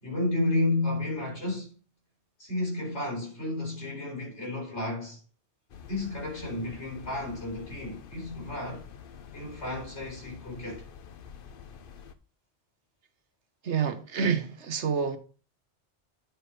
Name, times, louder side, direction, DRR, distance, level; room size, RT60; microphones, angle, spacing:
voice 1, 0.0-1.7 2.4-5.2 5.9-8.8 9.3-10.8, left 2 dB, 80° left, 4.5 m, -32 dB
sound 1, 5.7-12.1, left 7 dB, 55° left, 0.8 m, -47 dB
voice 2, 13.6-15.2, right 6 dB, 80° right, 1.3 m, -28 dB
9.5 x 4.7 x 5.2 m
omnidirectional pair, 1.2 m